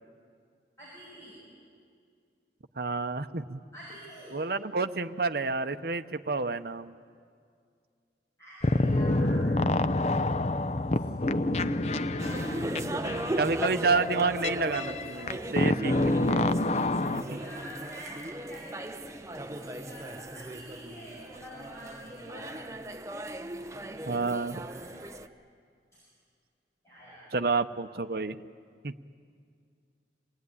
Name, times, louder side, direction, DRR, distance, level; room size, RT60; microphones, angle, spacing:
voice 1, 0.8-1.4 3.7-4.4 8.4-9.6 10.9-11.0 11.8-12.6 17.0-22.7 24.1-25.2 26.8-27.3, equal, 15° left, -8 dB, 7.7 m, -47 dB
voice 2, 2.8-3.6 4.3-6.9 13.4-16.5 17.1-17.4 24.1-24.6 27.3-28.4 28.8-28.9, right 4 dB, 60° right, 9 dB, 0.7 m, -29 dB
sound 1, 8.6-17.2, left 2 dB, 40° left, 0.6 m, -28 dB
sound 2, 12.2-25.3, right 1 dB, 15° right, 0.7 m, -38 dB
26.5 x 19.5 x 9.7 m, 2.2 s
head